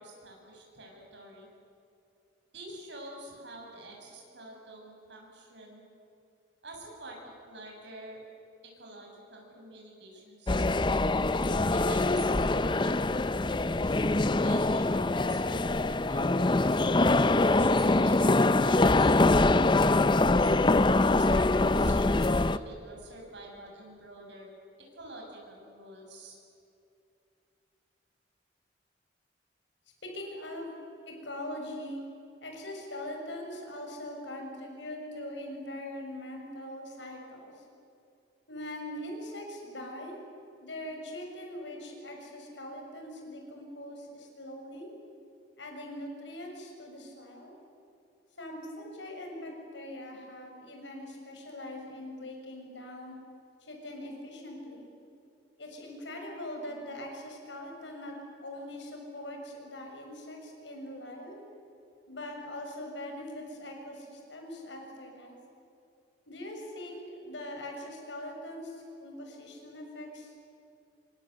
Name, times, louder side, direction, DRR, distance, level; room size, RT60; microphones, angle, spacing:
voice 1, 0.0-1.5 2.5-5.8 6.6-8.2 8.6-10.8 11.7-16.9 17.4-19.7 20.4-20.8 21.2-24.5 24.8-26.4, right 2 dB, 75° right, 0 dB, 7.8 m, -48 dB
sound 1, 10.5-22.6, left 2 dB, 25° left, 0.6 m, -24 dB
voice 2, 30.0-30.7 31.1-32.0 32.4-37.6 38.5-40.2 40.6-44.9 45.6-47.5 48.4-53.1 53.6-54.9 55.6-61.4 62.1-65.4 66.3-70.3, left 1 dB, 80° left, 2 dB, 6.5 m, -42 dB
26.0 x 25.0 x 8.0 m, 2.7 s
head